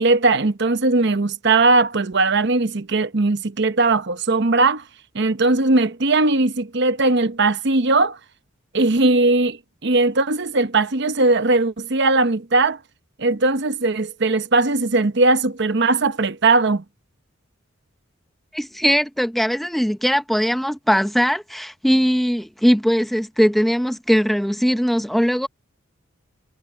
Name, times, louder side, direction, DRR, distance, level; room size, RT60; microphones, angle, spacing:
voice 1, 0.0-4.8 5.1-8.2 8.7-12.8 13.2-16.8, right 3 dB, 55° right, 0.9 m, -19 dB
voice 2, 18.5-25.5, equal, ahead, 0.7 m, -20 dB
head